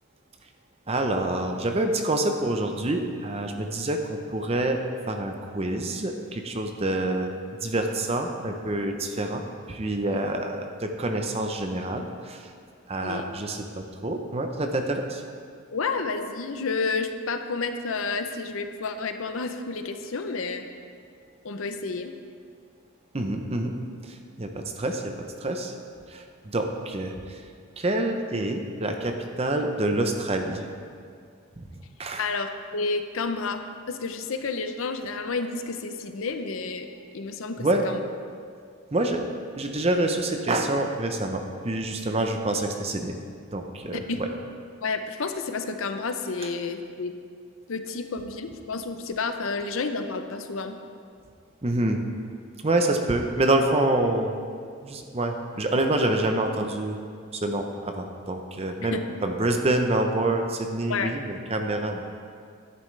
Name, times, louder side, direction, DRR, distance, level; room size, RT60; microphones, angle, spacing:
voice 1, 0.9-4.8 5.1-7.3 7.6-9.4 9.7-12.5 12.9-15.2 23.1-23.7 24.0-25.1 25.4-25.7 26.1-27.4 27.8-30.6 31.6-31.7 32.0-32.2 37.6-37.9 38.9-39.2 39.6-43.1 43.5-44.3 46.4-46.5 51.6-52.0 52.6-54.3 54.8-57.0 57.3-62.0, right 2 dB, 30° right, 4 dB, 0.6 m, -27 dB
voice 2, 15.7-20.6 21.4-22.1 32.2-33.6 33.9-36.9 37.1-38.0 43.9-44.2 44.8-47.1 47.7-50.8 58.9-59.0 60.9-61.1, left 4 dB, 70° left, 7 dB, 0.6 m, -30 dB
11.0 x 9.6 x 3.3 m, 2.2 s
head